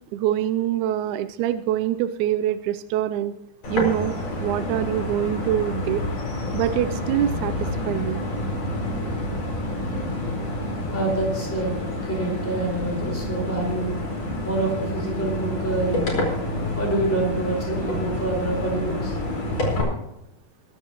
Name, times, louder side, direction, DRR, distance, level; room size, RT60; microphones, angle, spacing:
voice 1, 0.1-3.3 3.7-6.0 6.5-8.2, right 11 dB, 80° right, 11 dB, 1.8 m, -25 dB
sound 1, 3.6-19.8, left 1 dB, 50° left, 5.6 m, -28 dB
voice 2, 10.9-11.8 12.0-13.9 14.4-16.2 16.7-19.2, right 2 dB, 5° left, -1 dB, 4.7 m, -26 dB
23.0 x 11.0 x 3.0 m, 0.85 s
omnidirectional pair, 3.9 m